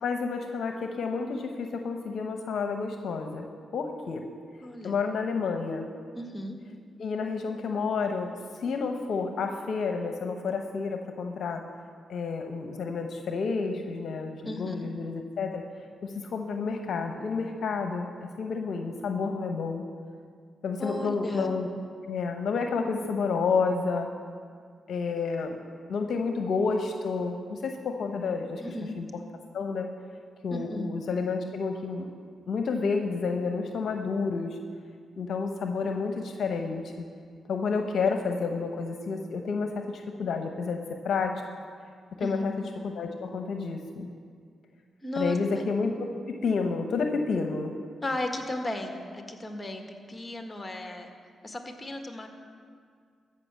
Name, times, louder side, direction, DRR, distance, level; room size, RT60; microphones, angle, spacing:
voice 1, 0.0-3.5 3.7-4.2 4.8-5.8 7.0-11.6 12.1-15.6 16.0-18.1 18.4-19.8 20.6-21.7 22.0-24.1 24.9-25.6 25.9-28.6 29.0-29.1 29.5-29.9 30.4-32.1 32.5-34.6 35.2-36.8 37.5-41.4 42.2-42.5 42.8-44.1 45.2-47.7, left 4 dB, 70° left, 5 dB, 0.8 m, -30 dB
voice 2, 4.6-5.0 6.1-6.6 14.4-14.9 20.8-21.5 28.6-29.0 30.5-30.9 42.2-42.4 45.0-45.4 48.0-51.1 51.4-52.3, left 1 dB, 25° left, 4 dB, 1.6 m, -35 dB
14.0 x 5.8 x 7.5 m, 2.1 s
supercardioid pair, 50°, 0 cm